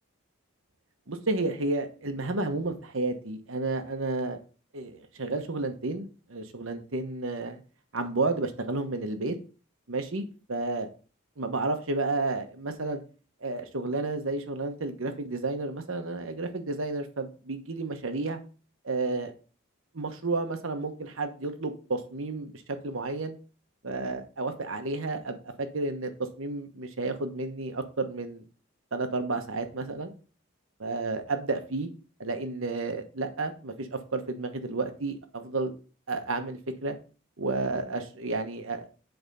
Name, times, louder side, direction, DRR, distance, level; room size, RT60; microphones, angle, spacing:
voice 1, 1.1-4.4 4.7-7.6 7.9-9.3 9.9-10.9 11.4-13.0 13.4-18.4 18.8-19.3 19.9-23.4 23.8-26.1 26.4-28.4 28.9-30.1 30.8-31.9 32.2-35.7 36.1-37.0 37.4-38.9, right 3 dB, 75° right, 7 dB, 1.1 m, -31 dB
7.9 x 3.5 x 5.4 m, 0.37 s
head